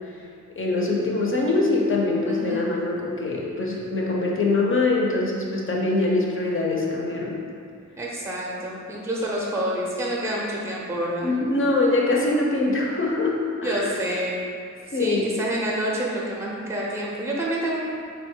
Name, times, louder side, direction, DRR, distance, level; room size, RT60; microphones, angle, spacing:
voice 1, 0.6-7.4 11.2-13.9 14.9-15.3, left 2 dB, 40° left, -2 dB, 0.6 m, -23 dB
voice 2, 2.3-2.6 8.0-11.3 13.6-14.4 14.9-17.8, right 1 dB, 10° right, -4 dB, 0.6 m, -28 dB
3.9 x 2.3 x 4.3 m, 2.2 s
wide cardioid pair, 120°, 31 cm